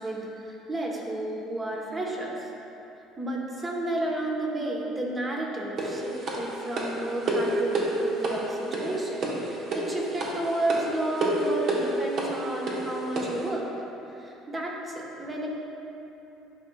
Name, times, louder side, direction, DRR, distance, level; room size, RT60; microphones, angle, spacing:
voice 1, 0.0-2.5 3.2-13.7 14.2-15.5, right 1 dB, 20° right, -1 dB, 1.0 m, -32 dB
sound 1, 5.8-13.5, right 2 dB, 55° right, 1.0 m, -30 dB
10.0 x 5.3 x 2.3 m, 2.9 s
cardioid pair, 130°, 0 cm